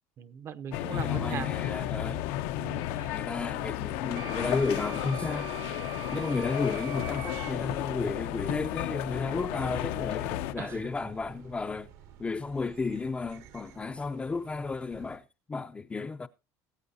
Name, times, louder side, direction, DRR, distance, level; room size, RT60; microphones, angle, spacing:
voice 1, 0.2-1.5 2.6-3.2 10.6-10.8, right 8 dB, 35° right, 0.7 m, -39 dB
sound 1, 0.7-10.5, left 13 dB, 80° left, 0.8 m, -33 dB
voice 2, 0.8-2.2 3.1-5.5 6.1-11.9 12.2-16.3, left 4 dB, 15° left, 0.5 m, -33 dB
Street Ambience Mexico, 1.0-15.2, right 9 dB, 85° right, 2.3 m, -53 dB
Wind instrument woodwind instrument, 4.2-7.5, right 10 dB, 65° right, 0.9 m, -43 dB
19.5 x 8.4 x 2.7 m
cardioid pair, 135°, 8 cm